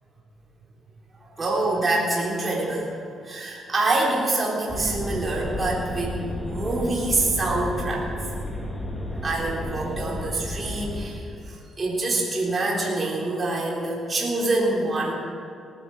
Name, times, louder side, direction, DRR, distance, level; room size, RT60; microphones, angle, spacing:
voice 1, 1.4-2.9 3.2-8.1 9.2-15.1, right 2 dB, 30° right, -4 dB, 4.0 m, -26 dB
sound 1, 4.7-11.1, left 1 dB, 5° left, 3.0 m, -32 dB
19.0 x 11.0 x 6.5 m, 2.5 s
cardioid pair, 90°, 0 cm